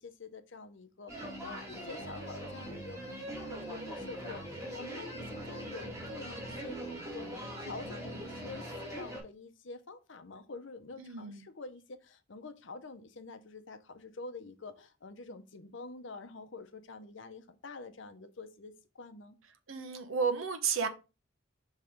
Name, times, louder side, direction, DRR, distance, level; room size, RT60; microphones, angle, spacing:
voice 1, 0.0-3.1 3.5-19.3, left 3 dB, 65° left, 0.7 m, -47 dB
sound 1, 1.1-9.2, equal, 15° right, 1.9 m, -41 dB
voice 2, 11.0-11.5 19.7-20.9, right 5 dB, 85° right, 1.0 m, -32 dB
5.9 x 3.2 x 5.0 m
head